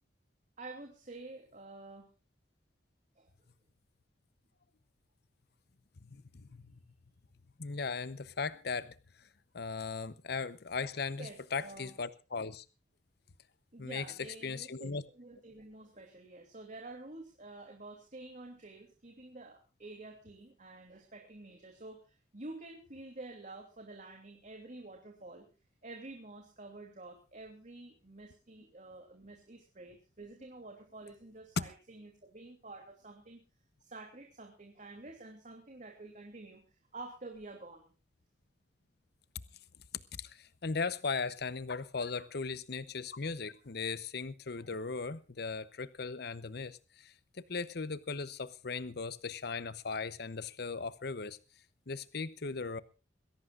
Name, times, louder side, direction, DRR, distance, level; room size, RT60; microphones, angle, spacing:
voice 1, 0.6-2.1 3.2-3.3 11.2-11.9 13.7-25.4 25.8-33.4 33.8-36.6 36.9-37.9, right 2 dB, 45° right, 2.9 m, -49 dB
voice 2, 6.0-6.7 7.6-9.0 9.5-12.6 13.8-15.0 31.6-31.7 40.1-51.4 51.9-52.8, left 4 dB, 60° left, 0.8 m, -38 dB
22.0 x 17.0 x 2.5 m
head